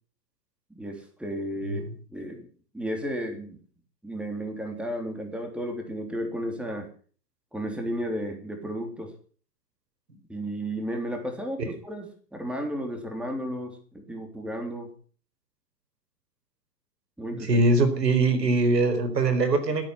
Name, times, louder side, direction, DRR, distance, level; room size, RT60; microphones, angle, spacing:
voice 1, 0.7-1.8 2.1-2.5 2.7-3.6 4.0-6.9 7.5-9.1 10.3-14.9 17.2-17.6, equal, ahead, 3 dB, 3.4 m, -33 dB
voice 2, 17.4-19.9, right 2 dB, 80° right, 8 dB, 4.6 m, -22 dB
16.5 x 9.0 x 8.1 m, 0.43 s
hypercardioid pair, 120°, 48 cm